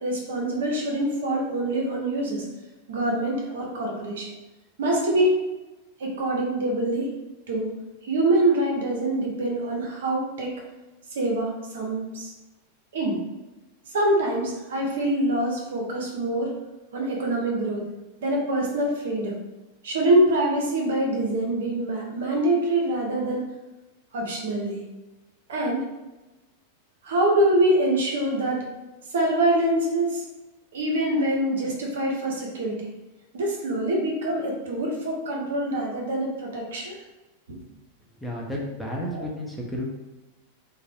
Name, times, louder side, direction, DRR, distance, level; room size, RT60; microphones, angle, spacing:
voice 1, 0.0-2.4 2.9-4.3 4.8-5.4 6.0-7.1 7.5-7.7 8.0-10.6 11.1-12.3 12.9-13.2 13.9-16.5 16.9-17.8 18.2-19.4 19.8-23.5 24.1-24.9 25.5-25.9 27.0-28.7 29.1-30.2 30.7-32.9 33.3-37.0 37.5-37.6 39.1-39.2, right 1 dB, 75° right, 0 dB, 0.7 m, -25 dB
voice 2, 38.2-39.9, left 1 dB, 5° left, -3 dB, 0.7 m, -32 dB
2.4 x 2.1 x 3.3 m, 1.1 s
hypercardioid pair, 110°, 0 cm